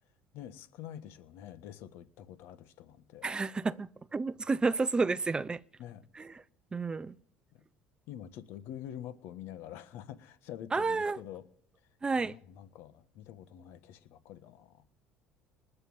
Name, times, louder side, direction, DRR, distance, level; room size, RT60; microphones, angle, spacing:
voice 1, 0.3-3.3 5.8-6.0 7.5-7.6 8.1-11.4 12.1-14.9, left 10 dB, 70° left, 1.4 m, -46 dB
voice 2, 3.2-5.6 6.2-6.3 6.7-7.1 10.7-11.2 12.0-12.4, right 4 dB, 20° right, 0.6 m, -30 dB
20.0 x 6.9 x 9.6 m
supercardioid pair, 95°, 4 cm